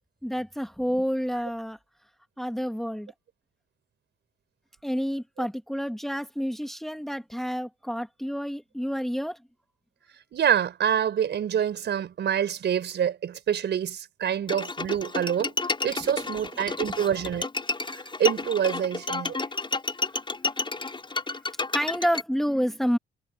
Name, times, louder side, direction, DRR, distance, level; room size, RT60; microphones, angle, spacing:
voice 1, 0.2-1.8 2.4-3.1 4.8-9.4 21.7-23.0, equal, ahead, 2.2 m, -29 dB
voice 2, 10.3-15.6 15.8-17.5 17.9-19.4, right 9 dB, 60° right, 4.8 m, -26 dB
Bowed string instrument, 14.5-22.2, left 3 dB, 25° left, 5.0 m, -31 dB
cardioid pair, 90°, 20 cm